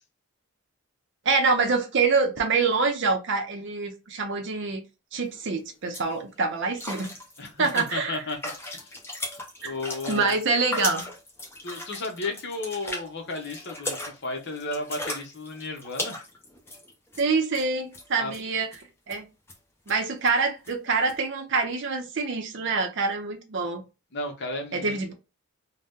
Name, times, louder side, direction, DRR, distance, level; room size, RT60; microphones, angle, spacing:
voice 1, 1.2-4.8 5.1-7.1 7.6-8.2 9.6-9.7 10.1-11.1 17.2-18.7 19.1-19.3 19.9-23.8 24.7-25.1, right 4 dB, 55° right, 0.6 m, -25 dB
sound 1, 5.3-5.4 5.7-6.1 6.8-17.3 17.5-17.7 17.9-18.4 18.7-18.8 19.1-19.2 19.5-19.6 19.9-20.0 20.2-20.3 20.6-20.7 21.1-21.2, left 1 dB, 10° left, 0.6 m, -37 dB
voice 2, 7.4-8.9 9.6-10.4 11.6-16.2 18.2-18.3 24.1-25.0, left 2 dB, 50° left, 0.8 m, -34 dB
2.8 x 2.1 x 3.5 m
head